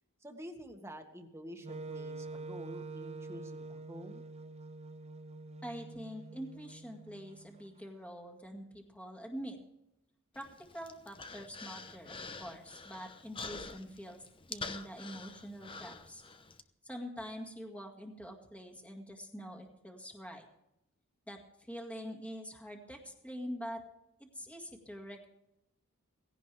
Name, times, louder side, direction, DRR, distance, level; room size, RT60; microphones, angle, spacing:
voice 1, 0.2-4.2, equal, 10° right, 4 dB, 1.8 m, -48 dB
Wind instrument woodwind instrument, 1.6-7.7, right 3 dB, 30° right, 0.5 m, -46 dB
voice 2, 5.6-9.6 10.3-16.2 16.8-20.5 21.3-23.9 24.2-25.3, equal, 5° left, 1 dB, 2.0 m, -45 dB
Human voice, 10.4-16.6, left 4 dB, 25° left, 0.9 m, -46 dB
17.5 x 17.0 x 3.4 m, 0.86 s
head